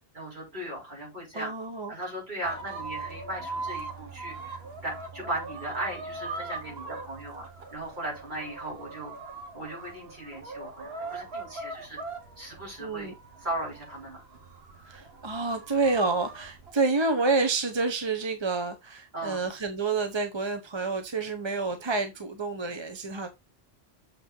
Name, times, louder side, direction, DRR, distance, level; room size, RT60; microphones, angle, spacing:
voice 1, 0.1-1.5 1.9-9.1 9.5-12.0 12.4-14.2 19.1-19.4, right 1 dB, 50° right, 4.7 m, -37 dB
voice 2, 1.3-2.0 12.8-13.1 14.8-23.3, right 3 dB, 30° right, 0.8 m, -28 dB
sound 1, 2.4-16.7, right 3 dB, 75° right, 1.6 m, -41 dB
7.0 x 5.6 x 3.7 m
omnidirectional pair, 1.1 m